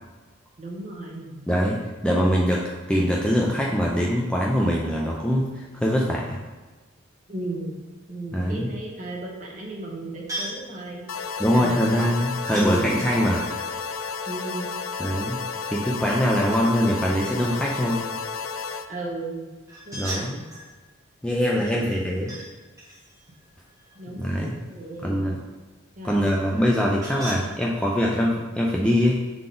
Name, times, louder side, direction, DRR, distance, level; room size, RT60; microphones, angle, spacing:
voice 1, 0.6-1.4 7.3-7.8 8.1-12.1 12.5-13.0 14.3-14.7 18.9-19.5 19.9-20.5 21.6-22.3 23.9-25.2 26.0-26.3, right 2 dB, 35° right, -3 dB, 1.1 m, -35 dB
voice 2, 1.5-2.6 2.9-6.4 8.3-8.7 11.4-13.4 15.0-15.4 15.7-18.1 19.9-20.4 21.2-22.3 24.2-24.5 25.0-25.4 26.0-29.2, equal, 5° left, -3 dB, 0.4 m, -23 dB
sound 1, 10.3-10.7 12.4-12.7 13.3-15.1 19.7-20.7 21.6-22.5 22.8-24.7 26.5-27.5, right 1 dB, 15° right, 1.6 m, -38 dB
sound 2, 11.1-18.9, left 5 dB, 80° left, 0.4 m, -32 dB
6.9 x 3.8 x 3.8 m, 1.3 s
head